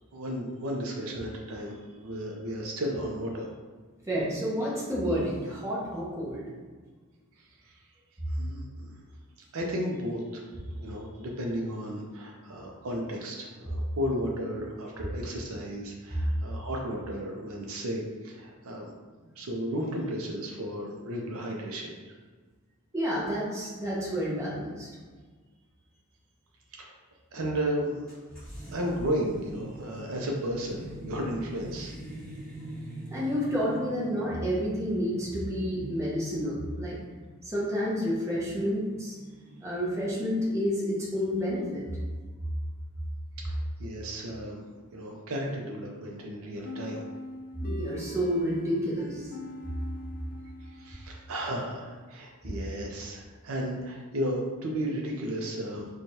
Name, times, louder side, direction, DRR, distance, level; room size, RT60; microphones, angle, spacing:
voice 1, 0.1-3.5 8.3-8.9 9.5-18.9 19.4-21.9 26.7-26.9 27.3-28.1 28.7-32.0 43.4-44.6 44.9-47.0 50.6-55.9, equal, 70° right, 0 dB, 0.5 m, -34 dB
voice 2, 4.1-6.4 22.9-24.9 33.1-37.0 37.4-39.1 39.6-41.8 47.6-49.3, equal, 15° right, -6 dB, 0.7 m, -29 dB
sound 1, 28.1-40.2, right 1 dB, 5° left, 1.3 m, -44 dB
sound 2, 46.6-51.3, left 1 dB, 40° left, 0.4 m, -42 dB
4.5 x 2.3 x 2.7 m, 1.4 s
head